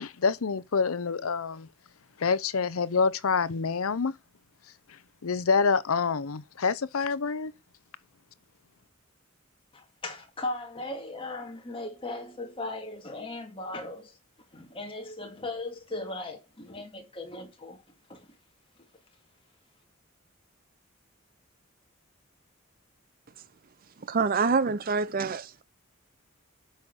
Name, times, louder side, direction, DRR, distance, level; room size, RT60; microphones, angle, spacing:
voice 1, 0.0-1.7 2.2-4.2 5.2-7.5, left 5 dB, 80° left, 0.7 m, -27 dB
voice 2, 9.7-14.2 14.5-17.8 18.1-18.3, left 2 dB, 25° left, 2.1 m, -38 dB
voice 3, 24.0-25.6, right 4 dB, 40° right, 0.5 m, -26 dB
8.1 x 5.7 x 6.8 m
head